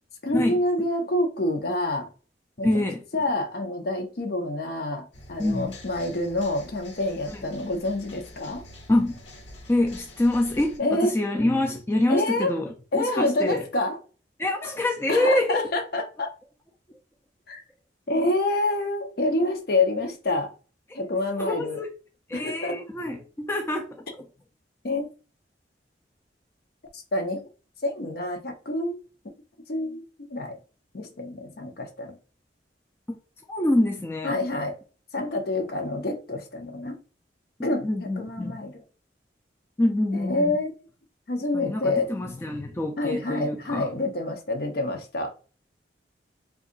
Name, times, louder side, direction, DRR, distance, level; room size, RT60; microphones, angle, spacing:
voice 1, 0.2-2.1 2.6-2.7 3.1-8.6 10.8-11.2 12.1-12.5 12.9-14.0 15.1-16.3 17.5-17.6 18.1-20.5 20.9-21.8 22.3-22.8 24.8-25.1 26.9-27.4 27.8-29.0 29.7-30.0 30.3-30.6 30.9-32.2 34.2-34.8 35.1-37.0 37.6-37.9 38.2-38.8 40.1-40.7 41.3-42.1 43.0-45.3, left 2 dB, 60° left, 0.7 m, -27 dB
voice 2, 2.6-3.0 5.4-5.8 7.3-7.4 8.9-9.2 9.7-13.6 14.4-15.7 20.9-21.0 21.4-21.9 22.3-24.1 33.1-33.2 33.5-34.4 37.8-38.6 39.8-40.5 41.5-43.9, left 1 dB, 15° left, 0.4 m, -26 dB
sound 1, 5.1-10.8, left 1 dB, 90° left, 0.9 m, -46 dB
2.6 x 2.3 x 3.8 m
head